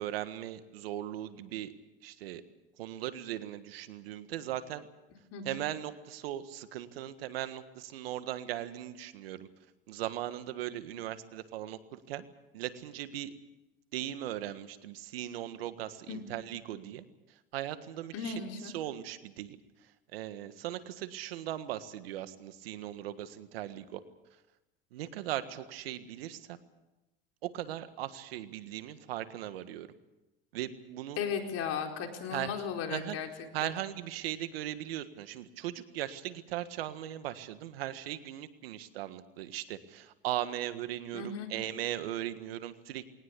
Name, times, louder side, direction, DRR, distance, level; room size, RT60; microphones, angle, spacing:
voice 1, 0.0-1.7 2.0-2.4 2.8-4.9 5.4-9.5 9.9-12.3 12.5-13.3 13.9-24.0 24.9-26.6 27.4-29.9 30.5-31.2 32.3-32.5 32.9-33.2 33.5-43.1, right 12 dB, 85° right, 12 dB, 1.6 m, -38 dB
voice 2, 5.3-5.6 16.1-16.2 18.1-18.7 31.2-33.7 41.1-41.5, left 6 dB, 55° left, 3 dB, 4.4 m, -36 dB
21.0 x 18.5 x 8.4 m, 0.98 s
hypercardioid pair, 95°, 29 cm